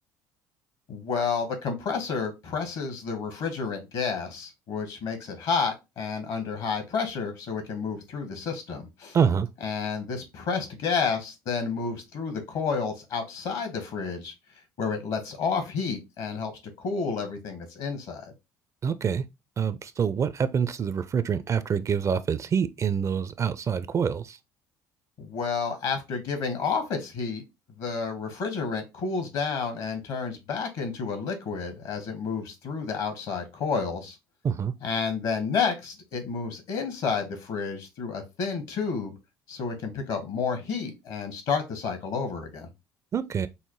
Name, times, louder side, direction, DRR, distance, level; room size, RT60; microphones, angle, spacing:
voice 1, 0.9-9.2 9.6-14.3 14.8-16.5 16.8-18.3 25.2-27.4 27.8-34.2 34.8-39.2 39.5-42.7, left 5 dB, 60° left, 1.3 m, -30 dB
voice 2, 9.1-9.5 18.8-19.2 19.6-24.4 34.4-34.7 43.1-43.5, right 7 dB, 35° right, 0.4 m, -26 dB
5.4 x 2.0 x 3.0 m
hypercardioid pair, 60°, 9 cm